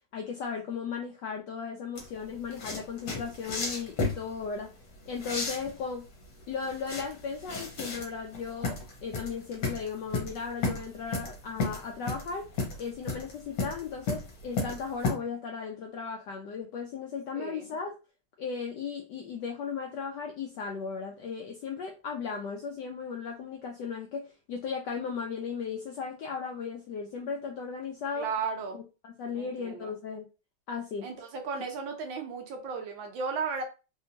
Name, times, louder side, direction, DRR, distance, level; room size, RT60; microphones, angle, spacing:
voice 1, 0.1-4.7 5.1-6.1 6.5-12.5 12.8-17.9 18.4-28.3 29.0-30.3 30.7-31.1, left 5 dB, 80° left, 2 dB, 0.9 m, -36 dB
sound 1, 2.0-15.1, left 3 dB, 50° left, 1.4 m, -34 dB
voice 2, 28.1-28.8 29.4-29.9 31.0-33.6, right 5 dB, 75° right, 4 dB, 1.2 m, -35 dB
3.4 x 2.7 x 2.7 m, 0.31 s
omnidirectional pair, 2.4 m